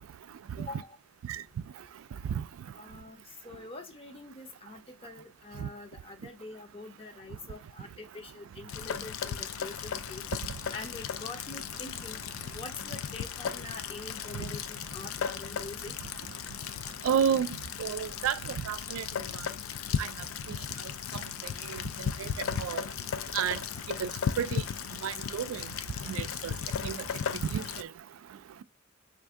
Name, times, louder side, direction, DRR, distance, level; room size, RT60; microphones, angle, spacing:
voice 1, 0.6-1.0 2.8-10.3 10.7-12.2 12.5-15.9, left 2 dB, 30° left, 0.6 m, -45 dB
Rain, 8.7-27.8, left 7 dB, 80° left, 0.4 m, -36 dB
voice 2, 17.1-17.5 17.8-18.3 18.7-19.0 22.6-22.8 23.3-23.6 24.0-24.1 24.4-24.6 25.0-25.5 26.8-26.9 27.5-27.6, right 8 dB, 85° right, 0.3 m, -28 dB
4.3 x 2.6 x 3.5 m
head